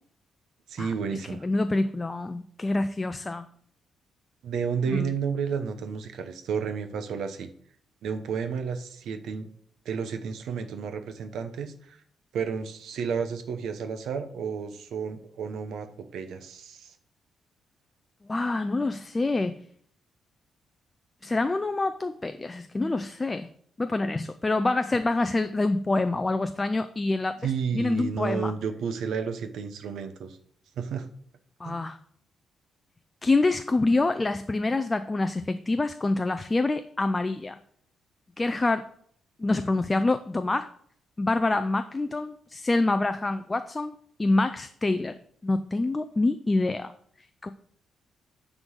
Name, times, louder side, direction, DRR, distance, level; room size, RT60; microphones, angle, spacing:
voice 1, 0.7-1.5 4.4-7.5 8.0-9.5 9.8-12.0 12.3-16.9 27.4-30.4 30.8-31.1 31.6-31.8, right 6 dB, 70° right, 8 dB, 0.9 m, -31 dB
voice 2, 1.4-3.5 4.9-5.1 18.2-19.6 21.2-23.5 23.8-28.5 31.6-32.0 33.2-37.6 38.4-38.9 39.4-40.7 41.2-45.2 45.4-46.9 47.4-47.5, left 2 dB, 15° left, 10 dB, 0.3 m, -26 dB
9.9 x 3.8 x 6.3 m, 0.63 s
cardioid pair, 175°, 0 cm